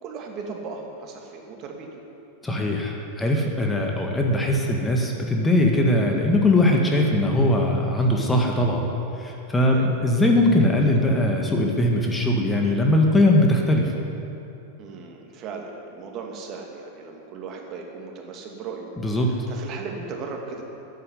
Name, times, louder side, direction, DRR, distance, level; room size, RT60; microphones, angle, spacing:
voice 1, 0.0-2.0 9.7-9.9 14.8-18.9 19.3-20.6, right 4 dB, 35° right, 1 dB, 2.5 m, -37 dB
voice 2, 2.4-8.9 9.2-13.9 19.0-19.3, left 1 dB, 10° left, 0 dB, 1.8 m, -20 dB
13.0 x 9.4 x 10.0 m, 2.8 s
figure-of-eight pair, 90°, 0 cm